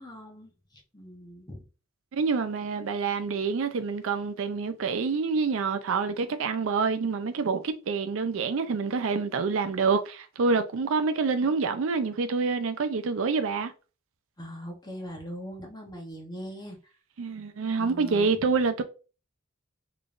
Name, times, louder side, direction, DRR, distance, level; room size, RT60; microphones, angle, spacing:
voice 1, 0.0-1.6 14.4-16.8 17.8-18.3, equal, 20° left, 0.9 m, -41 dB
voice 2, 2.1-13.7 17.2-18.8, right 4 dB, 65° right, 0.4 m, -27 dB
3.8 x 3.3 x 2.5 m
head